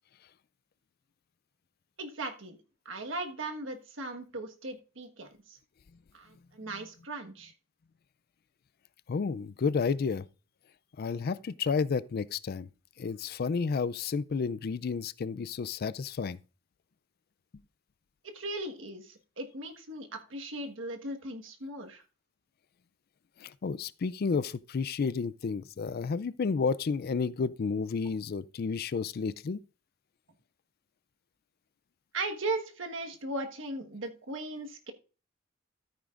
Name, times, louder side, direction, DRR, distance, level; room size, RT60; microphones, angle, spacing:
voice 1, 2.0-2.6 2.8-5.6 6.1-7.5 18.3-22.0 32.1-34.9, right 2 dB, 70° right, 1.5 m, -38 dB
voice 2, 9.1-10.2 11.0-12.7 13.0-16.4 23.4-29.6, left 5 dB, 50° left, 0.4 m, -31 dB
13.5 x 8.8 x 2.5 m
head